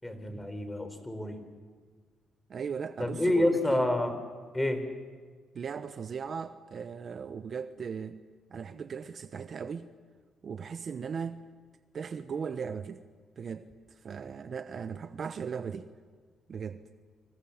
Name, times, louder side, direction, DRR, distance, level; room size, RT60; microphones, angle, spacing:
voice 1, 0.0-1.4 3.0-4.1 4.5-4.8, left 1 dB, 10° left, 8 dB, 4.3 m, -28 dB
voice 2, 2.5-3.9 5.5-8.2 8.5-9.9 10.4-11.4 11.9-13.0 13.4-15.9 16.5-16.8, right 6 dB, 50° right, 11 dB, 1.0 m, -38 dB
28.5 x 26.0 x 7.3 m, 1.5 s
cardioid pair, 90°, 0 cm